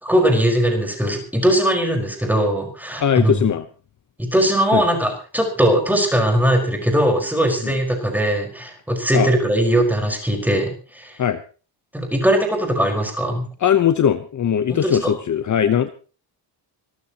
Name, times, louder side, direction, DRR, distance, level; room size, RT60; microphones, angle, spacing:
voice 1, 0.0-3.5 4.2-11.2 11.9-13.4 14.7-15.1, right 1 dB, 5° right, 2 dB, 5.0 m, -20 dB
voice 2, 3.0-3.6 4.7-4.8 7.6-7.7 9.1-9.3 11.2-11.4 13.6-15.9, left 9 dB, 40° left, 10 dB, 1.0 m, -19 dB
25.5 x 14.0 x 3.0 m, 0.36 s
cardioid pair, 140°, 44 cm